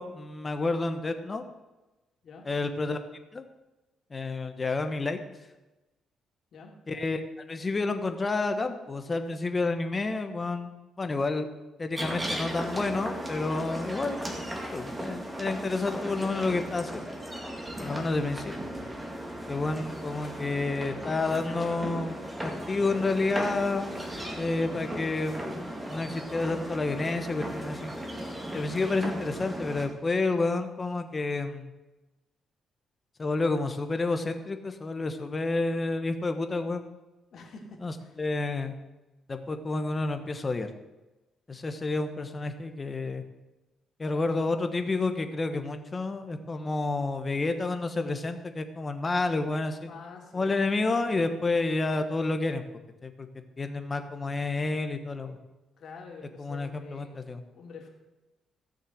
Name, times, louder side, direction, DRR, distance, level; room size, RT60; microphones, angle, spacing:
voice 1, 0.0-1.4 2.4-3.0 3.3-3.4 4.1-5.2 6.9-7.2 7.5-10.7 11.0-11.5 11.8-14.3 14.7-17.1 17.8-18.7 19.5-22.2 22.7-23.9 24.4-27.9 28.5-31.7 33.2-36.8 37.8-37.9 38.2-38.8 39.3-40.7 41.5-43.2 44.0-49.9 50.3-52.6 53.0-53.3 53.6-55.4 56.4-57.4, left 3 dB, 25° left, 8 dB, 1.2 m, -30 dB
sound 1, 12.0-29.9, equal, 15° right, 2.1 m, -36 dB
voice 2, 37.3-38.2 49.8-50.6 55.8-57.2 57.4-57.9, left 4 dB, 50° left, 0 dB, 3.0 m, -47 dB
16.0 x 6.7 x 7.8 m, 1.1 s
cardioid pair, 140°, 0 cm